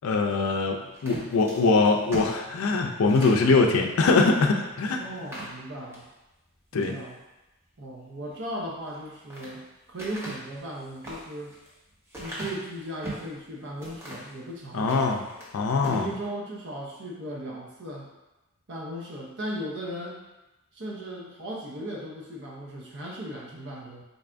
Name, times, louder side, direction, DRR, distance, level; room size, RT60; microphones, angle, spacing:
voice 1, 0.0-5.0 6.7-6.9 14.7-15.2 15.5-16.1, left 3 dB, 75° left, 3 dB, 0.4 m, -22 dB
sound 1, 0.9-3.5 4.0-4.2 4.6-4.7 5.1-6.1 6.6-7.0 8.8-9.5 10.0-13.3 13.8-14.4 14.8-15.5 15.8-16.1, right 1 dB, 10° right, 0.9 m, -40 dB
voice 2, 4.8-6.1 6.7-7.2 7.8-9.6 9.9-11.5 12.2-15.2 15.8-18.1 18.7-20.2 20.7-24.0, equal, 60° right, -3 dB, 0.7 m, -37 dB
4.0 x 2.5 x 3.3 m, 0.99 s
head